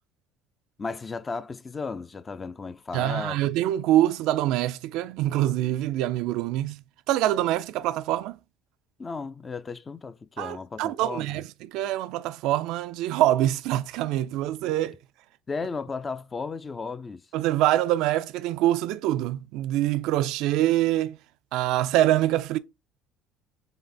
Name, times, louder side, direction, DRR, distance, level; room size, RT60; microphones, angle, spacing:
voice 1, 0.8-3.4 9.0-11.4 15.5-17.2, left 4 dB, 25° left, 0.4 m, -34 dB
voice 2, 2.9-6.8 7.1-8.4 10.4-14.9 17.3-21.2 21.5-22.6, right 14 dB, 70° right, 0.3 m, -25 dB
4.0 x 3.9 x 3.4 m
supercardioid pair, 100°, 0 cm